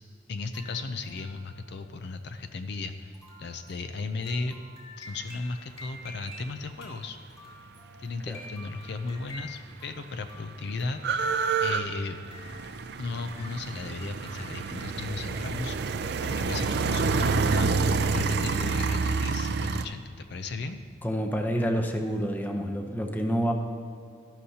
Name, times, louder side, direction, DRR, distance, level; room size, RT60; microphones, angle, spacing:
voice 1, 0.3-4.6 5.0-7.2 8.0-11.4 11.6-12.2 13.0-15.7 16.2-20.8, left 3 dB, 60° left, 9 dB, 0.5 m, -35 dB
sound 1, 0.5-14.8, left 1 dB, 30° left, 2.5 m, -50 dB
sound 2, 9.2-9.3 9.5-19.8, right 4 dB, 55° right, 0.4 m, -28 dB
voice 2, 21.0-23.5, equal, 10° left, 4 dB, 0.7 m, -28 dB
13.0 x 12.0 x 2.8 m, 2.4 s
head